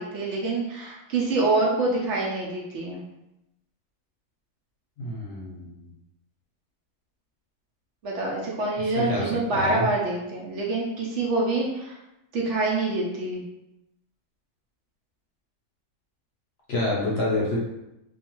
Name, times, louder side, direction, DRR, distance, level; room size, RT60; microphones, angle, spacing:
voice 1, 0.0-3.0 8.0-12.0 12.3-13.4, right 2 dB, 65° right, -3 dB, 0.8 m, -26 dB
voice 2, 5.0-5.9 8.9-9.9 16.7-17.6, left 2 dB, 60° left, -4 dB, 0.8 m, -28 dB
2.5 x 2.3 x 2.9 m, 0.89 s
omnidirectional pair, 1.4 m